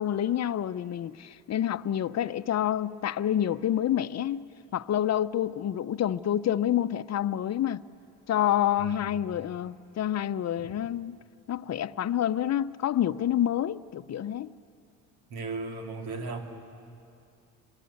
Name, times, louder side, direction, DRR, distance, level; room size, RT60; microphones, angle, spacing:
voice 1, 0.0-7.8 8.3-11.2 11.5-14.5, left 11 dB, 45° left, 0.7 m, -28 dB
voice 2, 8.8-9.1 15.3-16.4, right 3 dB, 75° right, 2.9 m, -36 dB
28.5 x 23.0 x 8.6 m
supercardioid pair, 75°, 38 cm